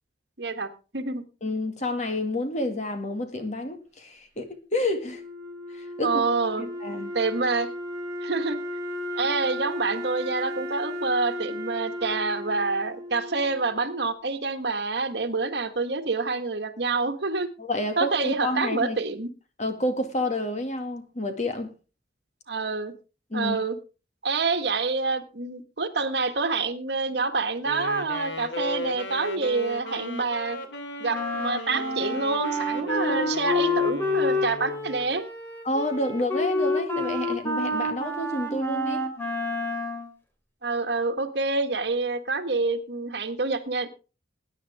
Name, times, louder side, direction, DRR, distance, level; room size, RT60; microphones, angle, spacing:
voice 1, 0.4-1.2 6.0-6.8 7.1-7.7 8.2-8.6 9.2-17.5 18.0-19.3 22.5-22.9 23.3-23.8 24.2-30.6 31.0-35.2 40.6-43.9, right 3 dB, 65° right, 1.5 m, -27 dB
voice 2, 1.4-5.2 5.7-6.2 6.6-7.1 17.6-19.0 19.6-21.7 23.3-23.6 35.6-39.0, left 1 dB, 40° left, 2.0 m, -29 dB
Wind instrument woodwind instrument, 5.0-14.1, equal, 15° right, 3.9 m, -35 dB
Wind instrument woodwind instrument 2, 27.6-35.1, equal, 80° left, 2.4 m, -36 dB
Wind instrument woodwind instrument 3, 31.1-40.1, left 2 dB, 10° left, 2.7 m, -28 dB
20.5 x 9.6 x 3.6 m
head